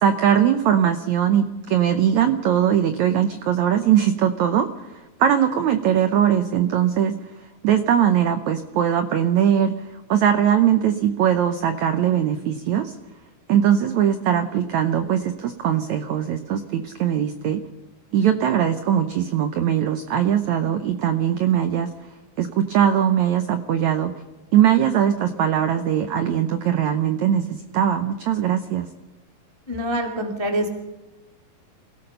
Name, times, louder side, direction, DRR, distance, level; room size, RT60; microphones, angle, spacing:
voice 1, 0.0-4.7 5.2-7.1 7.6-9.7 10.1-12.9 13.5-17.6 18.1-21.9 22.4-24.1 24.5-28.9, right 9 dB, 90° right, 9 dB, 1.6 m, -20 dB
voice 2, 29.7-30.7, equal, 20° left, 3 dB, 0.7 m, -25 dB
27.0 x 17.0 x 5.6 m, 1.1 s
omnidirectional pair, 4.6 m